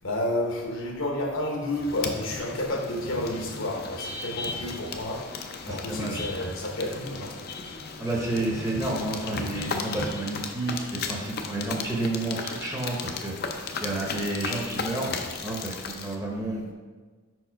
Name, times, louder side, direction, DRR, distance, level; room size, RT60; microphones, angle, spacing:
voice 1, 0.0-5.2 5.6-7.3, left 1 dB, 65° left, 1 dB, 1.0 m, -30 dB
sound 1, 1.7-16.2, left 4 dB, 45° left, 0.5 m, -35 dB
voice 2, 5.6-6.2 8.0-13.3 13.8-16.7, right 2 dB, 15° right, -2 dB, 0.9 m, -30 dB
5.3 x 4.7 x 4.6 m, 1.4 s
head